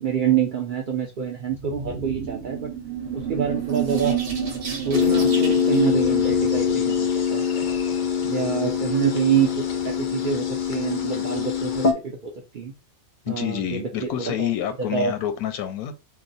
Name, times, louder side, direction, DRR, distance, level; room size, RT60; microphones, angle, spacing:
voice 1, 0.0-2.7 3.1-4.2 4.8-7.4 8.2-12.7 13.3-14.5 14.8-15.1, right 8 dB, 70° right, 0.4 m, -26 dB
sound 1, 1.4-6.9, right 8 dB, 50° right, 0.8 m, -30 dB
sound 2, 4.9-11.9, left 7 dB, 65° left, 0.4 m, -23 dB
voice 2, 13.2-15.9, left 10 dB, 85° left, 1.1 m, -28 dB
2.9 x 2.0 x 3.9 m
omnidirectional pair, 1.5 m